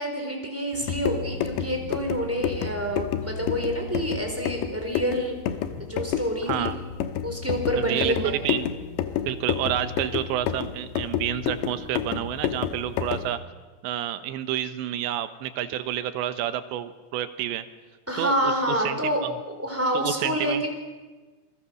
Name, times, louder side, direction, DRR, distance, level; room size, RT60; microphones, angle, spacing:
voice 1, 0.0-5.3 5.8-6.7 7.2-8.3 18.1-19.2 19.6-20.7, equal, 5° right, 2 dB, 3.7 m, -27 dB
sound 1, 0.7-13.4, left 9 dB, 75° left, 3.2 m, -30 dB
voice 2, 7.8-8.7 9.3-13.4 13.8-17.6 18.2-19.4 19.9-20.7, right 12 dB, 80° right, 11 dB, 3.3 m, -29 dB
27.5 x 22.5 x 6.5 m, 1.3 s
omnidirectional pair, 5.2 m